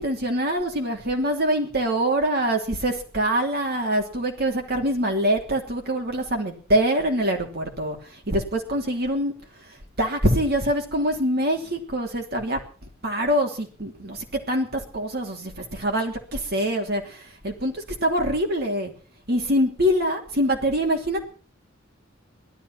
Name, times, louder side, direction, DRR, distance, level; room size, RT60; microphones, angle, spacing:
voice 1, 0.0-9.3 9.6-12.6 13.0-18.9 19.3-21.2, equal, 55° right, 3 dB, 3.1 m, -24 dB
16.0 x 12.5 x 5.9 m, 0.42 s
head